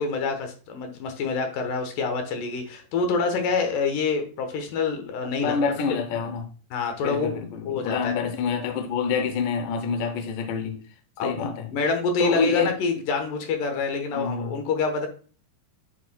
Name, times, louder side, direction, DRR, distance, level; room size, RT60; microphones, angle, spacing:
voice 1, 0.0-5.5 6.7-7.4 7.7-8.1 11.2-15.1, left 4 dB, 65° left, 2.5 m, -27 dB
voice 2, 5.4-6.5 7.0-10.9 11.2-11.7 12.2-12.7 14.1-14.5, left 5 dB, 90° left, 1.8 m, -27 dB
9.5 x 4.7 x 2.2 m
omnidirectional pair, 4.8 m